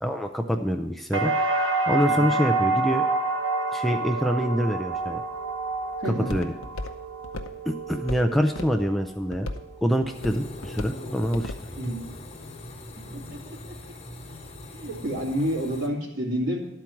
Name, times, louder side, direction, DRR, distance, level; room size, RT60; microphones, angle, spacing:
voice 1, 0.0-1.3 1.9-3.1 3.7-5.2 6.3-6.5 7.7-9.5 9.8-11.5, equal, ahead, 3 dB, 0.3 m, -25 dB
sound 1, 1.1-9.0 9.4-10.1, right 3 dB, 80° right, 1.1 m, -28 dB
Walk footsteps, 4.9-12.9, left 2 dB, 85° left, 0.7 m, -40 dB
voice 2, 6.0-6.4 11.8-12.1 13.1-13.9 14.7-16.6, equal, 65° right, -2 dB, 2.5 m, -30 dB
sound 2, 10.1-15.9, left 1 dB, 30° left, 1.0 m, -41 dB
12.0 x 4.5 x 7.1 m, 0.90 s
head